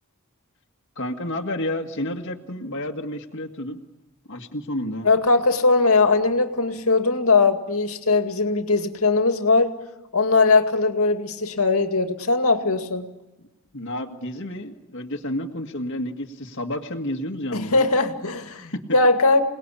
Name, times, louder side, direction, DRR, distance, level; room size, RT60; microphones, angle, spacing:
voice 1, 1.0-3.8 4.3-5.1 13.7-17.9 18.7-18.8, left 1 dB, 55° left, 2 dB, 1.9 m, -30 dB
voice 2, 5.0-9.7 10.1-13.1 17.5-19.4, left 3 dB, 75° left, 7 dB, 2.2 m, -20 dB
28.5 x 19.5 x 8.6 m, 1.1 s
head